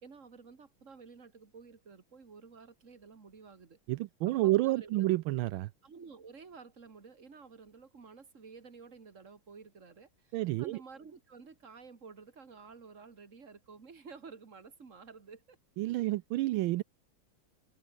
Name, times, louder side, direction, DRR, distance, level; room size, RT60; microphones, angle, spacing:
voice 1, 0.0-3.8 4.3-5.1 5.4-5.5 5.8-15.6 15.9-16.1, right 5 dB, 40° right, 2.6 m, -52 dB
voice 2, 3.9-5.7 10.3-10.8 15.8-16.8, right 17 dB, 80° right, 1.4 m, -29 dB
open air
omnidirectional pair, 2.2 m